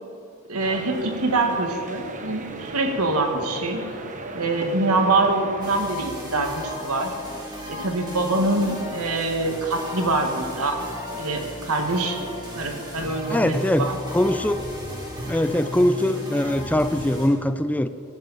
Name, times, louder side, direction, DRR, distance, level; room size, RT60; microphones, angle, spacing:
voice 1, 0.5-3.8 4.3-7.1 7.7-10.9 11.2-12.2 12.6-14.0, right 2 dB, 80° right, 4 dB, 1.8 m, -24 dB
sound 1, 0.6-5.8, right 2 dB, 35° right, 1.1 m, -37 dB
sound 2, 5.6-17.3, left 1 dB, 20° right, 3.6 m, -35 dB
voice 2, 13.3-14.6 15.3-17.9, left 1 dB, 5° left, 11 dB, 0.5 m, -22 dB
18.5 x 13.5 x 4.2 m, 2.5 s
head